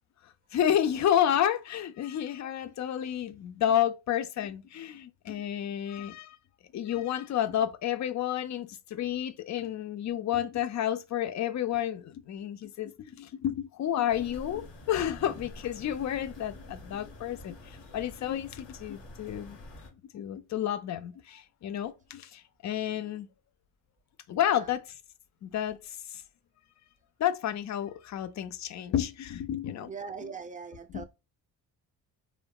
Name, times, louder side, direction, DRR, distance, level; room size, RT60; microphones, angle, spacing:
voice 1, 0.2-6.4 6.7-19.6 20.1-23.3 24.3-25.0 25.4-25.8 26.1-26.2 27.2-29.9 30.2-30.3 30.9-31.0, left 10 dB, 40° left, 0.4 m, -30 dB
sound 1, 14.1-19.9, left 1 dB, 55° left, 1.3 m, -48 dB
voice 2, 15.1-15.5 24.4-24.7 29.8-31.0, right 5 dB, 20° right, 0.4 m, -42 dB
3.0 x 2.0 x 2.3 m
hypercardioid pair, 45°, 46 cm